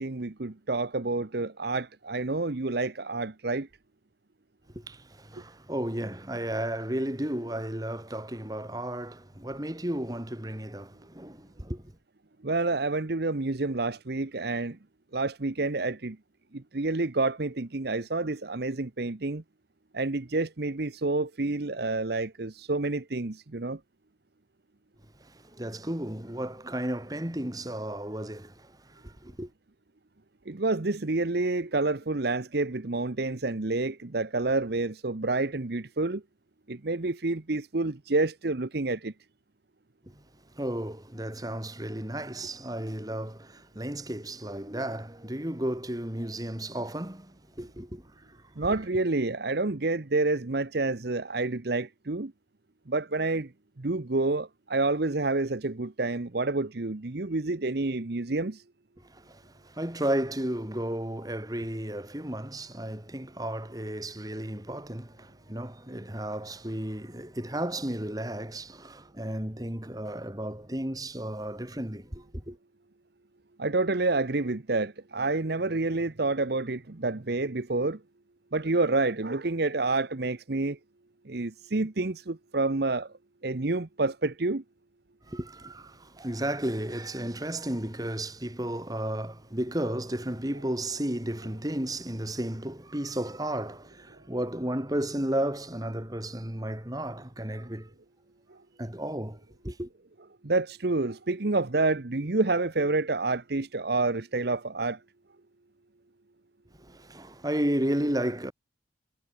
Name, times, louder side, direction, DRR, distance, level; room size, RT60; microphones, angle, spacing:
voice 1, 0.0-3.7 12.4-14.8 15.1-16.2 16.5-19.4 19.9-23.8 30.5-36.2 36.7-39.1 48.6-52.3 52.9-53.5 53.8-58.6 73.6-78.0 78.5-80.8 81.3-83.1 83.4-84.6 100.4-105.0, right 3 dB, 55° right, 0.9 m, -28 dB
voice 2, 4.7-11.9 25.2-29.5 40.1-40.2 40.6-48.4 48.7-48.8 59.1-72.6 85.3-97.9 98.8-99.4 99.6-99.9 106.8-108.5, right 1 dB, 20° right, 2.3 m, -33 dB
head